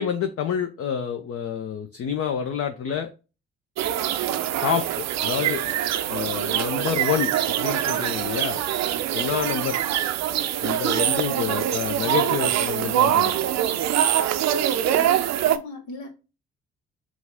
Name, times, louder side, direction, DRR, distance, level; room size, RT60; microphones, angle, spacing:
voice 1, 0.0-3.1 4.6-4.8 5.2-5.6 6.1-7.3 7.6-8.6 9.1-9.8 10.6-13.3, left 8 dB, 45° left, 0.6 m, -28 dB
sound 1, 3.8-15.6, right 11 dB, 55° right, 0.6 m, -24 dB
voice 2, 15.0-16.1, left 2 dB, 65° left, 1.3 m, -39 dB
6.0 x 2.4 x 3.5 m
hypercardioid pair, 45°, 33 cm